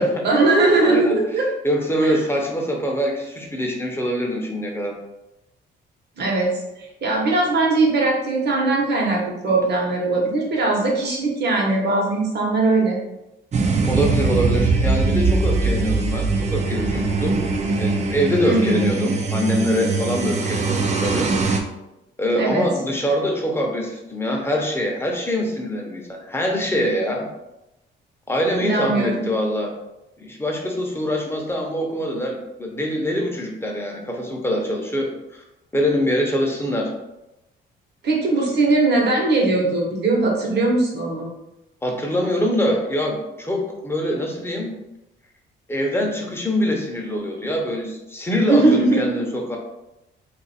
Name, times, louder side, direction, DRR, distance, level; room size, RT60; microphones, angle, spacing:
voice 1, 0.0-1.5 2.0-2.2 6.2-6.5 6.8-13.0 18.4-18.9 22.3-22.6 28.6-29.2 38.0-41.3 48.5-49.2, right 2 dB, 55° right, -2 dB, 1.1 m, -20 dB
voice 2, 0.8-1.2 1.6-4.9 13.8-17.4 17.7-21.3 22.2-27.3 28.3-29.7 30.2-35.1 35.7-36.9 41.8-44.7 45.7-49.6, equal, 10° left, 0 dB, 0.7 m, -24 dB
sound 1, 13.5-21.6, right 3 dB, 35° right, 0.5 m, -21 dB
2.5 x 2.5 x 4.1 m, 0.93 s
cardioid pair, 90°, 20 cm